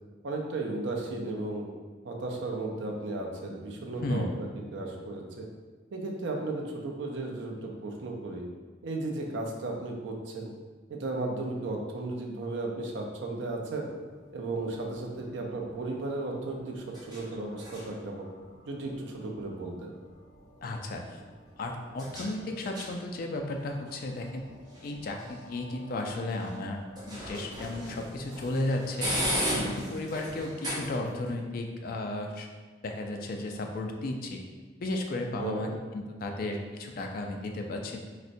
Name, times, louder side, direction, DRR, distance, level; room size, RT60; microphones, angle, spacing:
voice 1, 0.2-1.7 2.0-5.5 5.9-8.4 8.8-10.6 10.9-13.9 14.3-18.3 18.7-19.9 35.4-35.8, right 2 dB, 65° right, 1 dB, 0.5 m, -35 dB
voice 2, 3.9-4.3 20.6-21.2 21.6-24.4 24.8-26.8 27.1-29.1 29.5-32.5 32.8-34.4 34.8-38.0, left 2 dB, 45° left, 2 dB, 0.3 m, -34 dB
sound 1, 13.8-31.3, equal, 20° right, 0.6 m, -39 dB
4.0 x 2.1 x 2.5 m, 1.4 s
head